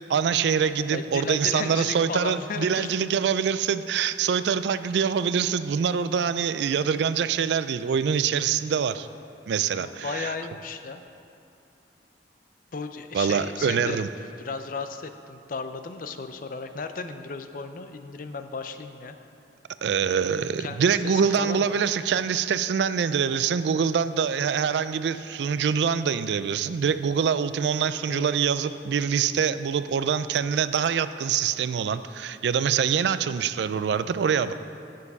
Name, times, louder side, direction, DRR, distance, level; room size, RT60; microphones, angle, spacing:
voice 1, 0.1-9.1 9.5-10.3 13.1-14.1 19.8-34.5, right 7 dB, 75° right, 13 dB, 0.3 m, -25 dB
voice 2, 0.9-3.0 9.8-11.0 12.7-19.2 20.6-21.8 28.1-28.3 34.4-34.5, left 4 dB, 50° left, 8 dB, 0.5 m, -35 dB
9.6 x 6.5 x 5.4 m, 2.6 s
head